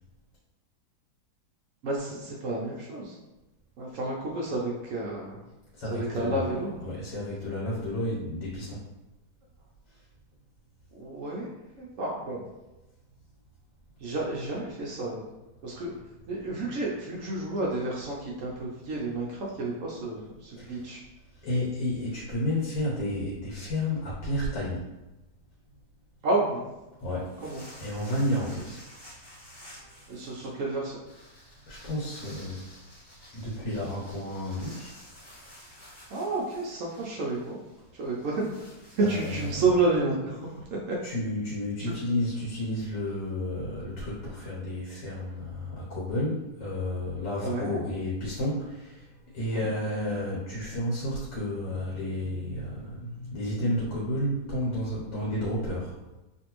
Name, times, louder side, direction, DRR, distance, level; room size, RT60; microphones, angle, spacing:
voice 1, 1.8-3.2 3.8-5.4 5.9-6.8 10.9-11.5 11.8-12.4 14.0-15.2 15.6-15.9 16.3-21.0 26.2-26.7 27.4-27.6 30.1-31.0 36.1-37.6 38.0-38.6 39.0-40.5 40.9-41.0 41.8-42.0 47.4-47.8 49.5-49.7, right 2 dB, 75° right, -3 dB, 0.7 m, -30 dB
voice 2, 5.7-6.5 6.8-8.8 20.6-20.9 21.3-24.9 27.0-27.3 27.8-28.8 29.8-30.0 31.7-32.6 33.3-34.9 39.0-39.6 41.0-56.0, left 1 dB, 75° left, -6 dB, 1.7 m, -31 dB
sound 1, 27.0-39.6, left 1 dB, 20° left, 0.7 m, -52 dB
3.3 x 2.6 x 2.9 m, 1.0 s
omnidirectional pair, 1.9 m